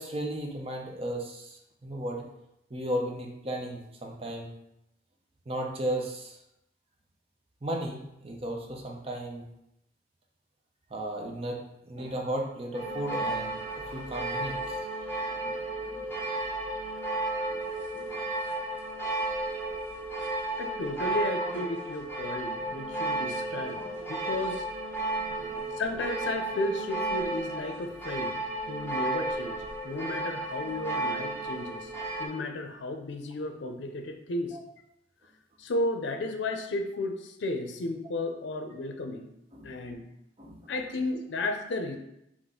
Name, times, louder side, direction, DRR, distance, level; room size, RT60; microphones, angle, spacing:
voice 1, 0.0-2.3 2.7-4.5 5.5-6.4 7.6-9.5 10.9-14.9 15.2-16.5 17.5-17.7 17.9-18.3 19.6-19.7 23.6-23.8 24.9-25.1 25.4-25.8 34.5-34.6 39.5-39.7 40.4-40.7, right 1 dB, 35° right, 1 dB, 0.7 m, -36 dB
sound 1, 12.7-32.3, right 2 dB, 15° left, 0.8 m, -33 dB
voice 2, 20.6-23.8 24.1-24.7 25.8-28.4 28.7-29.6 29.8-31.9 32.2-34.6 35.6-39.3 39.6-40.0 40.7-42.0, left 2 dB, 90° left, 5 dB, 0.5 m, -33 dB
4.0 x 3.1 x 3.7 m, 0.82 s
head